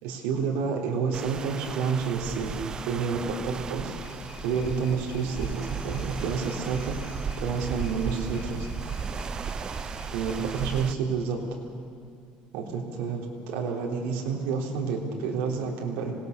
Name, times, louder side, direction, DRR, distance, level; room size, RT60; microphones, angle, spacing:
voice 1, 0.0-2.6 2.9-3.9 4.4-7.0 7.4-8.7 10.1-11.4 12.5-16.1, right 5 dB, 85° right, 0 dB, 3.7 m, -29 dB
sound 1, 1.1-10.9, right 6 dB, 25° right, 0.6 m, -36 dB
sound 2, 4.0-10.9, left 5 dB, 85° left, 3.1 m, -47 dB
26.0 x 19.5 x 6.8 m, 2.4 s
cardioid pair, 160°, 3 cm